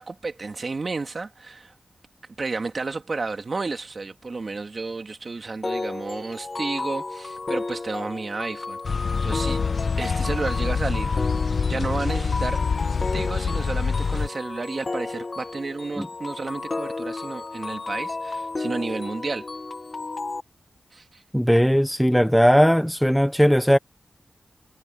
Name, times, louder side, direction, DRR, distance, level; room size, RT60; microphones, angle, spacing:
voice 1, 0.0-1.7 2.4-9.7 10.0-11.1 11.7-12.6 13.1-19.4 20.9-21.2, right 3 dB, 55° right, 2.7 m, -31 dB
sound 1, 5.6-20.4, left 3 dB, 45° left, 1.3 m, -33 dB
sound 2, 8.8-14.3, left 5 dB, 75° left, 0.8 m, -25 dB
voice 2, 21.3-23.8, equal, ahead, 1.0 m, -18 dB
wide cardioid pair, 80°, 0 cm